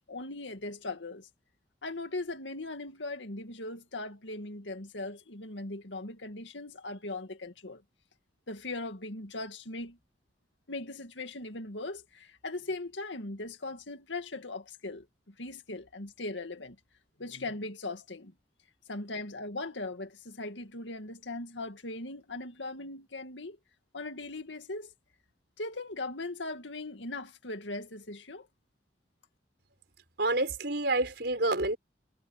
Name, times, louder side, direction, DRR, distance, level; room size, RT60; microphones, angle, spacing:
voice 1, 0.1-1.3 1.8-7.8 8.5-10.0 10.7-15.1 15.4-16.8 17.2-18.3 18.9-23.6 23.9-24.9 25.6-28.5, left 2 dB, 90° left, 2.2 m, -39 dB
voice 2, 30.2-31.8, right 2 dB, 65° right, 5.0 m, -28 dB
head